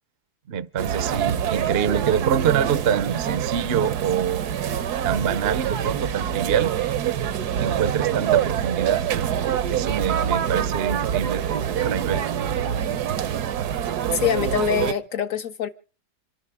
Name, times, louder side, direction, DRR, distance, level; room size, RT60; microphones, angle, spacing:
voice 1, 0.5-4.4 5.0-6.7 7.6-9.0 9.7-12.3, right 8 dB, 45° right, 0.9 m, -25 dB
sound 1, 0.8-14.9, right 9 dB, 65° right, 1.4 m, -25 dB
voice 2, 14.1-15.7, left 9 dB, 50° left, 1.6 m, -24 dB
27.0 x 11.5 x 3.6 m
omnidirectional pair, 1.9 m